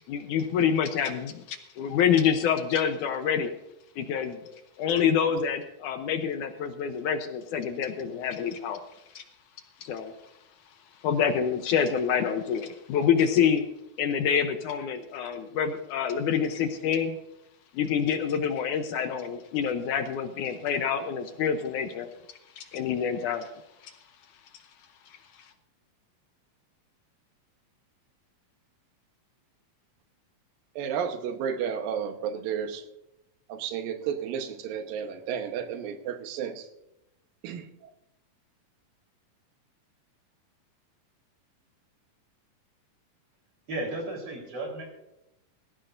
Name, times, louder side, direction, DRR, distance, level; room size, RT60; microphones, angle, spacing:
voice 1, 0.1-3.5 4.0-8.8 9.2-9.3 9.8-10.1 11.0-13.6 14.0-17.2 17.7-22.1 22.6-23.5 23.8-23.9, left 7 dB, 75° left, 8 dB, 2.1 m, -27 dB
voice 2, 30.8-32.8 33.5-36.7 37.4-37.9, right 8 dB, 90° right, 7 dB, 2.9 m, -32 dB
voice 3, 43.7-44.9, right 2 dB, 45° right, 1 dB, 4.8 m, -34 dB
18.0 x 15.5 x 2.6 m, 0.87 s
omnidirectional pair, 4.0 m